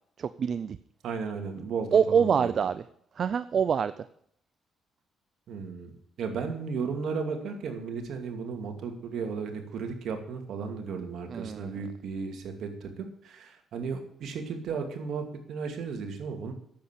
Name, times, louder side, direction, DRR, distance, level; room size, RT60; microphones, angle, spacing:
voice 1, 0.2-0.8 1.9-2.8 3.2-4.1 11.3-11.7, right 7 dB, 55° right, 14 dB, 0.5 m, -25 dB
voice 2, 1.0-2.5 5.5-5.9 6.2-16.5, right 5 dB, 70° right, 4 dB, 2.5 m, -35 dB
10.5 x 7.8 x 8.3 m, 0.68 s
cardioid pair, 90°, 0 cm